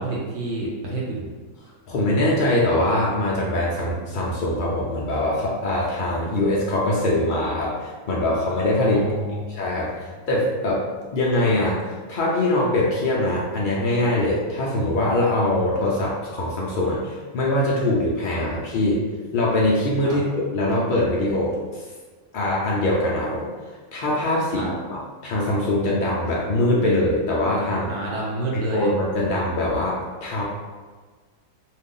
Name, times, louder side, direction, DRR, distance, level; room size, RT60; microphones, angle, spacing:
voice 1, 0.0-1.3 8.9-9.5 20.0-20.2 24.5-24.7 27.9-28.9, right 2 dB, 65° right, -4 dB, 0.8 m, -29 dB
voice 2, 1.9-9.1 9.5-10.8 11.1-11.8 12.1-19.1 19.3-21.8 22.3-23.5 23.9-27.9 28.5-30.4, left 1 dB, 90° left, -5 dB, 0.4 m, -23 dB
2.6 x 2.4 x 3.6 m, 1.4 s
omnidirectional pair, 1.5 m